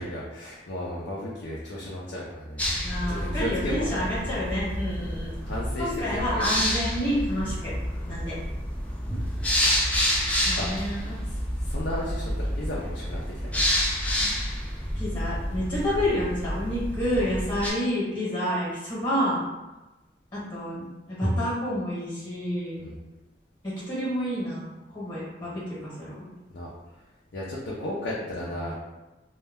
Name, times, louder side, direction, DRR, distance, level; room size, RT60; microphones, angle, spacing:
voice 1, 0.0-2.6 3.1-4.1 5.0-5.1 5.4-6.4 7.4-7.5 8.1-8.3 10.6-10.7 11.3-13.7 22.8-23.0 26.5-26.7 27.3-28.7, left 1 dB, 70° left, -5 dB, 0.5 m, -34 dB
sound 1, 2.6-17.7, equal, 10° left, 0.4 m, -29 dB
voice 2, 2.8-5.3 5.8-7.7 8.1-8.4 9.1-9.2 10.4-11.2 14.9-19.4 20.3-22.9 23.6-24.7 24.9-26.3 28.6-28.7, equal, 25° left, -7 dB, 1.1 m, -29 dB
2.3 x 2.1 x 3.4 m, 1.1 s
head